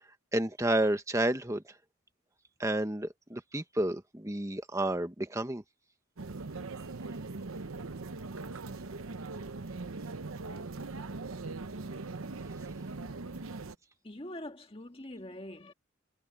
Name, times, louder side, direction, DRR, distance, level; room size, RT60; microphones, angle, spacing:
voice 1, 0.3-1.6 2.6-5.6, right 1 dB, 15° right, 1.3 m, -30 dB
sound 1, 6.2-13.8, right 3 dB, 90° right, 0.9 m, -40 dB
voice 2, 14.0-15.7, left 1 dB, 25° left, 1.9 m, -43 dB
head